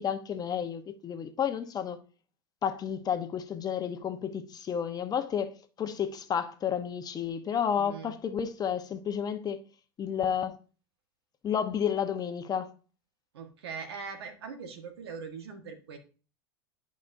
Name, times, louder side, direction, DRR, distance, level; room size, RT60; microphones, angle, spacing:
voice 1, 0.0-2.0 2.6-9.6 10.0-10.5 11.4-12.7, left 8 dB, 30° left, 1.0 m, -31 dB
voice 2, 7.8-8.1 13.3-16.0, right 5 dB, 75° right, 1.5 m, -41 dB
11.0 x 5.2 x 2.7 m
hypercardioid pair, 85°, 13 cm